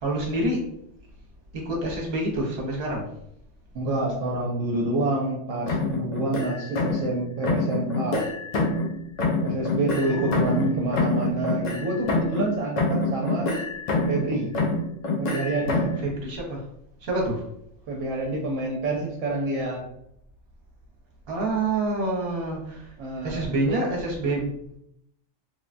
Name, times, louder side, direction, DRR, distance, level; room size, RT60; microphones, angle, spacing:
voice 1, 0.0-0.6 1.5-3.1 10.1-10.9 16.2-16.6 17.0-17.4 21.3-22.8 23.2-24.5, right 2 dB, 55° right, -2 dB, 1.0 m, -27 dB
voice 2, 3.7-8.2 9.4-13.5 14.1-14.5 15.2-15.9 17.9-19.8 23.0-23.9, right 2 dB, 80° right, -2 dB, 0.9 m, -28 dB
sound 1, 5.7-7.2 7.4-8.9 9.2-12.5 12.8-14.3 14.5-16.0, left 2 dB, 90° left, 0.3 m, -26 dB
3.1 x 2.2 x 2.4 m, 0.74 s
omnidirectional pair, 1.3 m